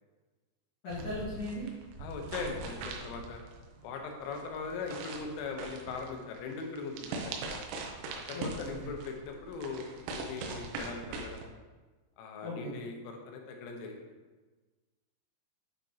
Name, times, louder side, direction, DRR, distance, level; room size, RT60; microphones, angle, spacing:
voice 1, 0.8-1.7 8.3-8.9 12.4-12.7, left 1 dB, 55° left, -10 dB, 2.4 m, -38 dB
sound 1, 0.9-11.4, right 3 dB, 90° right, 3.6 m, -42 dB
voice 2, 2.0-3.4 3.8-7.6 8.3-11.4 12.2-14.1, left 4 dB, 80° left, 2 dB, 3.2 m, -40 dB
9.1 x 5.9 x 2.8 m, 1.3 s
omnidirectional pair, 5.9 m